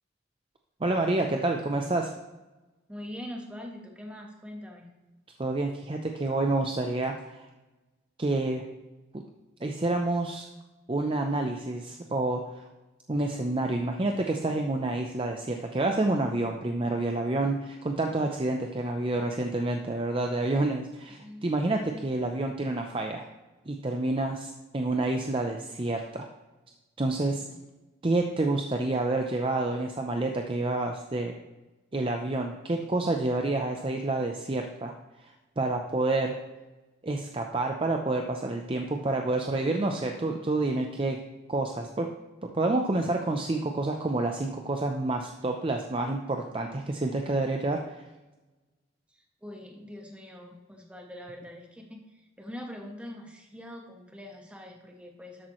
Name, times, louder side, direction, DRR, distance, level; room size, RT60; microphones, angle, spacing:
voice 1, 0.8-2.1 5.4-7.5 8.2-8.6 9.6-10.5 10.9-12.6 13.1-23.2 23.7-26.2 27.0-27.4 28.0-31.3 31.9-34.9 35.2-36.4 37.0-41.2 41.5-42.1 42.5-48.0, right 2 dB, 25° right, 3 dB, 0.6 m, -28 dB
voice 2, 2.9-4.9 21.1-21.4 27.4-27.6 49.1-55.5, left 1 dB, 5° right, 1 dB, 1.2 m, -43 dB
12.5 x 8.3 x 3.1 m, 1.1 s
head